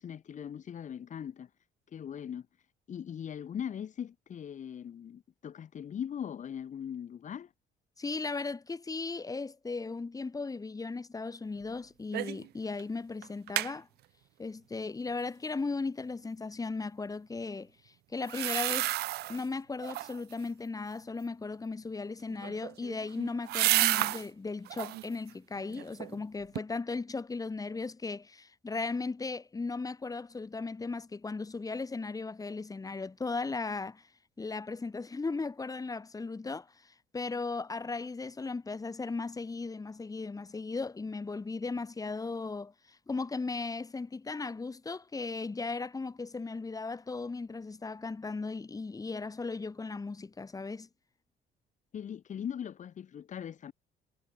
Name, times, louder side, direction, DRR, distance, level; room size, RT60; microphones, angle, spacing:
voice 1, 0.0-1.5 1.9-2.5 2.9-7.5 51.9-53.7, left 8 dB, 45° left, 4.0 m, -40 dB
voice 2, 8.0-13.9 14.4-18.9 19.3-34.1 34.4-50.9, left 3 dB, 20° left, 5.6 m, -37 dB
sound 1, 12.1-12.5 12.8-12.9 13.2-13.7 18.2-19.4 19.8-20.3 22.3-24.3 24.7-25.1 25.6-26.2 26.6-26.7, right 17 dB, 70° right, 0.6 m, -31 dB
cardioid pair, 110°, 17 cm